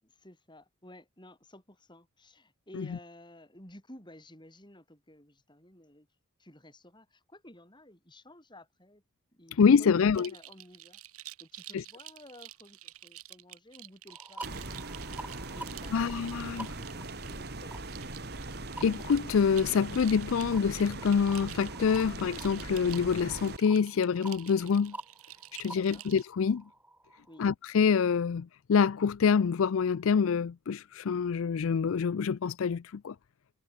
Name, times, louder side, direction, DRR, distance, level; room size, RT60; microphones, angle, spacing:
voice 1, 0.0-6.1 6.4-9.0 9.3-14.7 15.5-18.0 25.7-26.1 27.3-27.5, left 1 dB, 20° left, 6.4 m, -54 dB
voice 2, 9.6-10.3 11.7-11.8 15.9-16.7 18.8-24.9 25.6-26.6 27.4-33.1, left 6 dB, 65° left, 0.4 m, -26 dB
sound 1, 10.1-26.2, right 14 dB, 80° right, 2.1 m, -49 dB
sound 2, 14.1-27.4, right 2 dB, 5° right, 3.2 m, -49 dB
sound 3, 14.4-23.6, right 2 dB, 45° right, 3.6 m, -40 dB
head